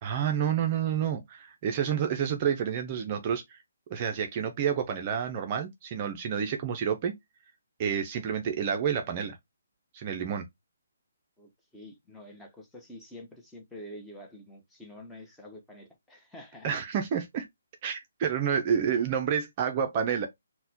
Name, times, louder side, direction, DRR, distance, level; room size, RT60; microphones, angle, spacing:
voice 1, 0.0-3.6 3.9-7.1 7.8-9.4 9.9-10.4 16.6-17.5 17.8-20.3, right 8 dB, 30° right, 0.4 m, -29 dB
voice 2, 11.4-16.7, left 1 dB, 5° left, 0.7 m, -47 dB
4.0 x 2.1 x 2.7 m
figure-of-eight pair, 150°, 0 cm